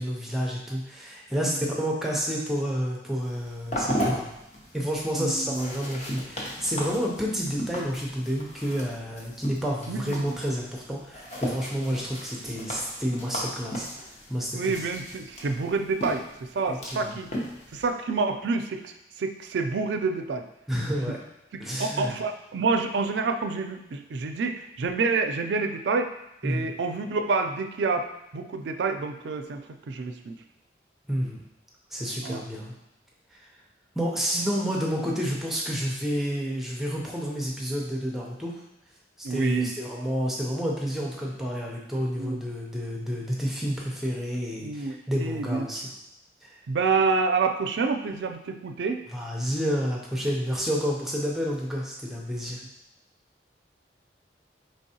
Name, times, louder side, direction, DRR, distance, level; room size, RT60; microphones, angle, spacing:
voice 1, 0.0-4.3 4.7-13.9 14.3-14.9 16.7-17.2 20.7-21.2 21.6-22.2 26.4-26.7 31.1-31.4 31.9-32.7 33.3-33.5 33.9-38.6 39.2-45.8 46.4-46.5 49.1-52.6, equal, ahead, -3 dB, 0.5 m, -29 dB
sound 1, 3.2-17.9, equal, 40° left, 0.7 m, -36 dB
voice 2, 5.1-5.7 9.9-10.4 14.5-17.3 17.7-18.9 19.2-20.5 21.0-21.2 21.8-26.1 26.4-28.1 28.3-30.4 32.2-32.4 39.2-39.7 42.2-42.4 44.6-45.7 46.7-49.0, right 4 dB, 75° right, 6 dB, 0.4 m, -28 dB
4.4 x 3.3 x 2.8 m, 0.88 s
head